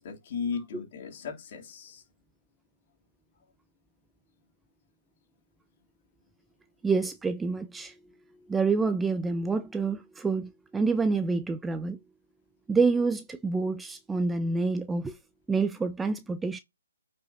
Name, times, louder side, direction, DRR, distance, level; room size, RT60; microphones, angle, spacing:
voice 1, 0.0-2.0, left 5 dB, 40° left, 3.3 m, -36 dB
voice 2, 6.8-8.0 8.5-12.0 12.7-15.2 15.5-16.6, right 4 dB, 5° right, 0.4 m, -27 dB
9.1 x 5.3 x 2.9 m
hypercardioid pair, 150°, 0 cm